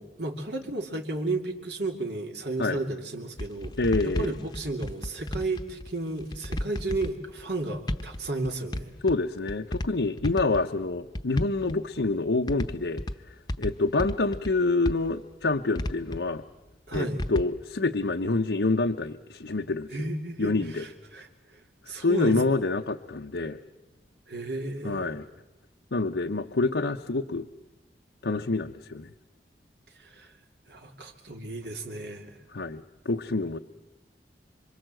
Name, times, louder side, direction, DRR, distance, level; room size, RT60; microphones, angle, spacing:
voice 1, 0.0-3.8 4.0-8.9 16.9-17.2 19.9-21.6 21.9-22.4 24.3-25.2 30.0-30.3 30.7-32.4, right 2 dB, 75° right, 3 dB, 3.0 m, -33 dB
sound 1, 3.4-5.9 6.2-7.4 7.7-8.8 9.1-9.9 10.2-10.8 11.1-12.1 12.5-13.2 13.5-14.5 14.8-16.2 16.9-17.4, left 1 dB, 25° left, 0.9 m, -32 dB
voice 2, 3.8-4.3 9.0-13.0 13.6-16.4 16.9-20.1 20.4-20.8 22.0-23.6 24.8-25.2 25.9-27.5 28.2-29.1 32.5-33.6, left 3 dB, 90° left, 4 dB, 0.9 m, -27 dB
27.0 x 25.0 x 7.8 m, 1.0 s
head